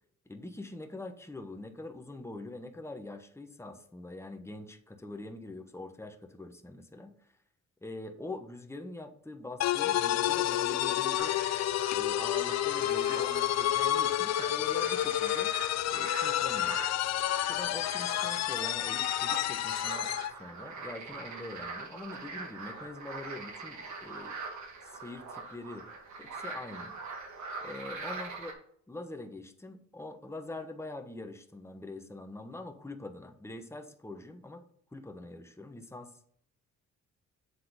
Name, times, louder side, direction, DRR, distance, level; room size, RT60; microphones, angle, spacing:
voice 1, 0.3-7.3 7.8-11.5 11.9-15.5 15.9-16.8 17.5-24.3 24.8-25.9 26.2-26.9 27.6-28.5 28.9-34.7 34.9-36.1, left 2 dB, 10° left, 5 dB, 1.1 m, -44 dB
sound 1, 9.6-20.3, left 13 dB, 60° left, 0.4 m, -29 dB
sound 2, 11.2-28.5, right 4 dB, 70° right, 1.9 m, -43 dB
8.1 x 3.8 x 5.1 m, 0.65 s
cardioid pair, 90°, 30 cm